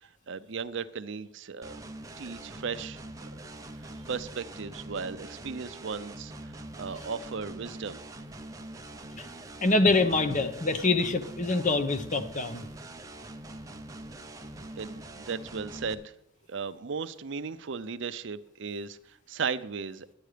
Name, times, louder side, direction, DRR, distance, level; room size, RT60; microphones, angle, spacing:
voice 1, 0.0-1.8 2.2-3.0 3.8-8.0 14.8-16.1 16.5-20.1, right 5 dB, 65° right, 13 dB, 0.6 m, -36 dB
sound 1, 1.6-15.9, right 1 dB, 15° right, 0.8 m, -43 dB
voice 2, 9.6-12.6, left 3 dB, 40° left, 9 dB, 0.9 m, -25 dB
11.5 x 9.2 x 5.0 m, 0.84 s
head